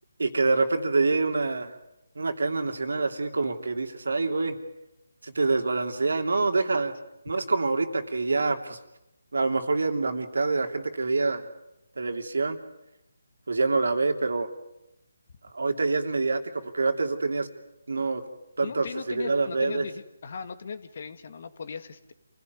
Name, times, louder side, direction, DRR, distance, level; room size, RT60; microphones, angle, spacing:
voice 1, 0.2-1.8 2.1-4.6 5.2-6.9 7.2-8.8 9.3-11.5 12.0-12.6 13.5-14.5 15.5-16.4 16.7-17.5 17.9-18.2 18.6-19.8, right 3 dB, 75° right, 6 dB, 3.0 m, -26 dB
voice 2, 18.6-22.1, left 5 dB, 50° left, 10 dB, 2.0 m, -38 dB
28.0 x 16.5 x 9.5 m, 0.89 s
figure-of-eight pair, 155°, 0 cm